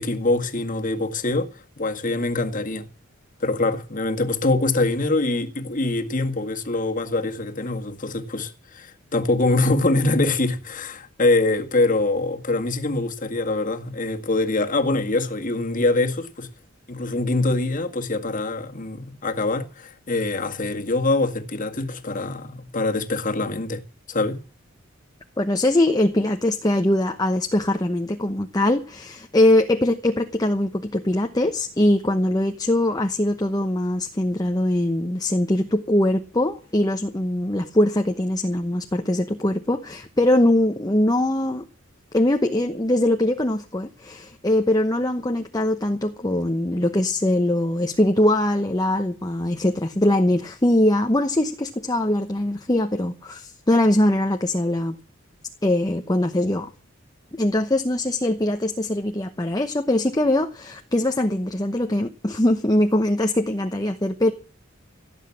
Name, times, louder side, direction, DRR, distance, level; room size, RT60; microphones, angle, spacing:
voice 1, 0.0-1.5 1.8-2.9 3.4-16.5 16.9-23.8 24.1-24.4, left 2 dB, 40° left, 1.9 m, -24 dB
voice 2, 25.4-41.7 42.1-55.0 55.6-56.7 57.4-64.3, left 1 dB, 20° left, 1.0 m, -22 dB
17.0 x 8.2 x 8.6 m
head